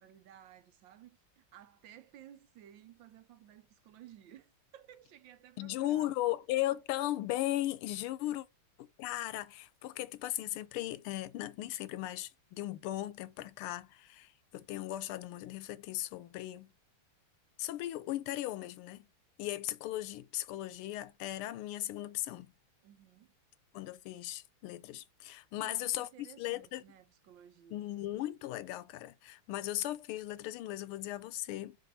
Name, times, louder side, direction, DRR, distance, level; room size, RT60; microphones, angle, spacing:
voice 1, 0.0-6.1 22.8-23.3 25.6-27.8, right 11 dB, 70° right, 1.3 m, -56 dB
voice 2, 5.6-8.5 8.8-16.7 17.6-19.1 19.4-22.5 23.7-26.8 27.7-31.8, left 14 dB, 85° left, 1.5 m, -37 dB
5.1 x 4.6 x 4.0 m
omnidirectional pair, 2.4 m